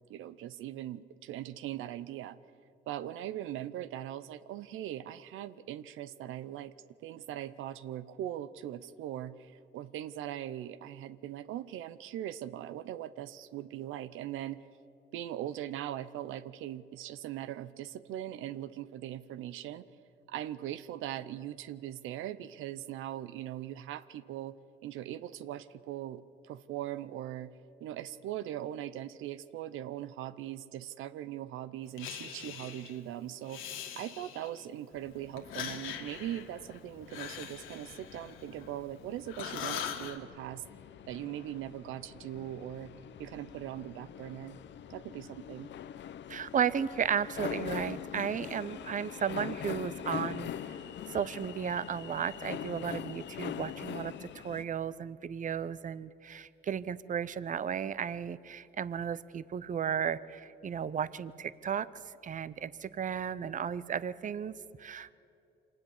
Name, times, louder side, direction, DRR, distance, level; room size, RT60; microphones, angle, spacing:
voice 1, 0.1-2.4 2.9-6.7 7.0-14.6 15.1-19.9 20.3-27.5 27.8-40.6 41.1-42.9 43.2-44.6 44.9-45.7, right 12 dB, 90° right, 14 dB, 0.7 m, -40 dB
Breathing, 32.0-33.0 33.4-34.7 35.4-39.0 39.3-40.2, left 9 dB, 85° left, 1.8 m, -42 dB
sound 1, 34.9-54.6, left 9 dB, 65° left, 0.8 m, -44 dB
voice 2, 46.3-50.8 51.1-61.9 62.2-65.1, right 8 dB, 40° right, 17 dB, 0.7 m, -34 dB
25.5 x 18.5 x 7.3 m, 2.8 s
cardioid pair, 90°, 20 cm